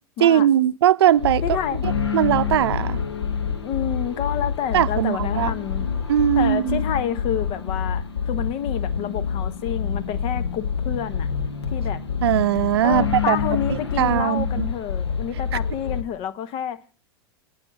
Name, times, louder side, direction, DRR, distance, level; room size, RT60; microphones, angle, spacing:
voice 1, 0.2-1.6 1.8-3.0 4.7-5.5 6.1-6.8 12.2-13.4 13.7-14.7, right 11 dB, 75° right, 0.5 m, -20 dB
sound 1, 1.2-16.0, left 6 dB, 90° left, 1.3 m, -27 dB
voice 2, 1.4-1.9 3.6-5.9 6.4-11.3 11.7-12.0 12.8-16.8, left 9 dB, 45° left, 0.9 m, -29 dB
10.5 x 6.1 x 6.7 m
hypercardioid pair, 95°, 13 cm